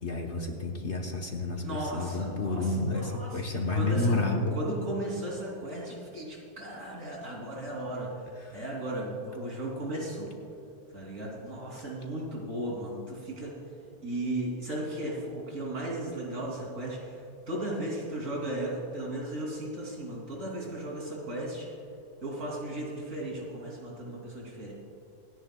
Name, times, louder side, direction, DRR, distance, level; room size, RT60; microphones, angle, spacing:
voice 1, 0.0-4.6 8.4-8.6, left 2 dB, 50° left, 1 dB, 1.3 m, -30 dB
voice 2, 1.6-4.2 4.5-8.1 8.5-10.3 10.9-13.6 14.0-17.2 17.5-21.7 22.2-24.7, right 1 dB, 55° right, -3 dB, 3.4 m, -36 dB
27.0 x 10.0 x 2.3 m, 2.8 s
omnidirectional pair, 1.7 m